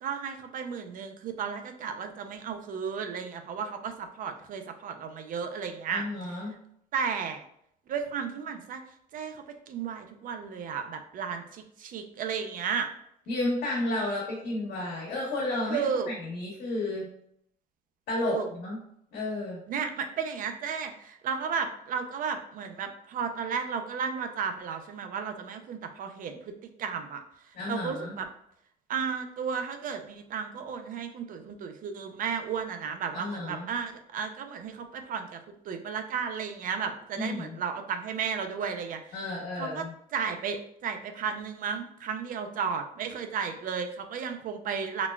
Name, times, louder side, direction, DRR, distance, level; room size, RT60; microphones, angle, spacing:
voice 1, 0.0-6.0 6.9-7.4 7.9-8.8 9.1-12.9 15.7-16.1 18.2-18.5 19.7-27.2 27.7-28.3 28.9-39.2 39.6-39.9 40.1-45.1, right 6 dB, 55° right, 7 dB, 0.5 m, -34 dB
voice 2, 5.9-6.6 13.3-17.1 18.1-18.8 19.1-19.6 27.5-28.1 33.1-33.7 37.1-37.6 39.1-39.9, left 2 dB, 80° left, -5 dB, 1.3 m, -32 dB
3.9 x 2.2 x 2.3 m, 0.71 s
cardioid pair, 110°, 17 cm